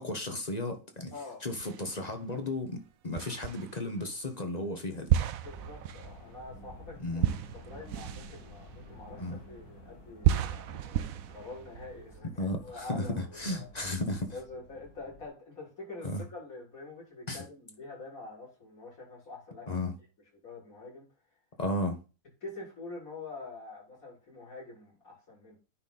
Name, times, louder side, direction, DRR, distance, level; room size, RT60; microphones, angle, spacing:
voice 1, 0.0-1.1 1.4-5.2 7.0-7.3 9.2-9.4 12.4-14.4 16.0-16.2 17.3-17.4 19.7-19.9 21.6-22.0, left 1 dB, 30° left, 1.1 m, -34 dB
voice 2, 1.1-1.5 5.4-7.2 7.5-11.0 11.3-13.7 14.3-19.7 20.4-21.1 22.4-25.6, left 3 dB, 65° left, 5.4 m, -46 dB
sound 1, 1.6-2.3 3.2-4.0 5.1-9.6 10.2-12.2, right 11 dB, 70° right, 1.0 m, -32 dB
sound 2, 5.4-15.3, left 1 dB, 80° left, 2.2 m, -52 dB
9.7 x 4.0 x 4.1 m
omnidirectional pair, 1.6 m